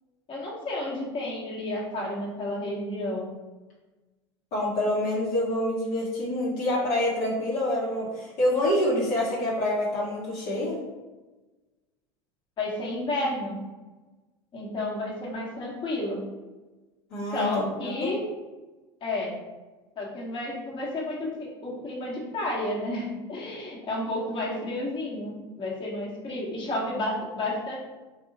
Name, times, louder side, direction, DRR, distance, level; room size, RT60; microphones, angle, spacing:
voice 1, 0.3-3.3 12.6-13.5 14.5-16.2 17.2-18.3 19.0-19.3 20.0-27.8, left 1 dB, 35° left, -4 dB, 1.3 m, -31 dB
voice 2, 4.5-10.8 17.1-18.1, left 1 dB, 55° left, -6 dB, 1.1 m, -27 dB
3.6 x 2.4 x 4.0 m, 1.2 s
hypercardioid pair, 80°, 15 cm